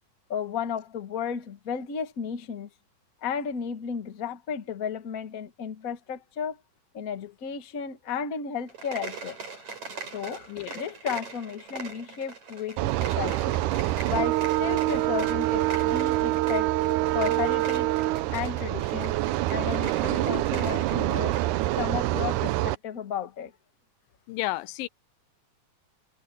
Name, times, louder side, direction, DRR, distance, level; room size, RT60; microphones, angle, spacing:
voice 1, 0.3-2.7 3.2-6.6 6.9-9.4 10.1-10.5 10.7-13.6 14.1-16.7 17.1-17.9 18.3-19.1 19.5-21.3 21.8-23.5, left 7 dB, 40° left, 1.2 m, -33 dB
sound 1, 8.6-21.9, right 4 dB, 55° right, 8.5 m, -41 dB
voice 2, 10.5-10.8 24.3-24.9, left 18 dB, 90° left, 2.5 m, -32 dB
sound 2, 12.8-22.8, right 16 dB, 75° right, 2.0 m, -26 dB
omnidirectional pair, 3.9 m